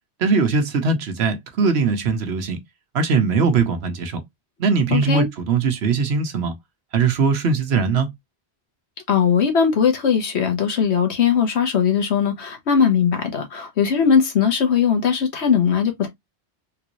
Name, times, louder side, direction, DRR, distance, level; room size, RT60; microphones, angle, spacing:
voice 1, 0.2-2.6 2.9-4.2 4.6-6.5 6.9-8.1, right 5 dB, 75° right, 1.0 m, -20 dB
voice 2, 4.9-5.3 9.1-16.1, left 7 dB, 90° left, 1.3 m, -19 dB
3.6 x 2.5 x 3.0 m
omnidirectional pair, 1.1 m